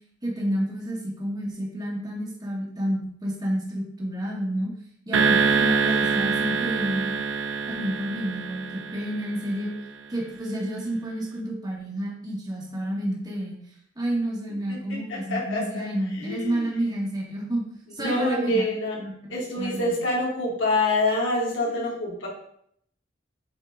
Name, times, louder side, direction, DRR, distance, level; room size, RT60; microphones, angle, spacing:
voice 1, 0.2-4.7 5.1-7.2 7.7-9.7 10.1-13.6 14.0-17.6 17.9-18.6 19.0-19.1 19.6-20.0 21.7-21.8, right 1 dB, 20° right, -3 dB, 2.0 m, -30 dB
sound 1, 5.1-9.6, right 5 dB, 80° right, 0.8 m, -25 dB
voice 2, 14.7-16.7 18.0-19.0 19.3-22.3, left 2 dB, 80° left, -4 dB, 2.6 m, -27 dB
8.4 x 4.5 x 3.8 m, 0.68 s
head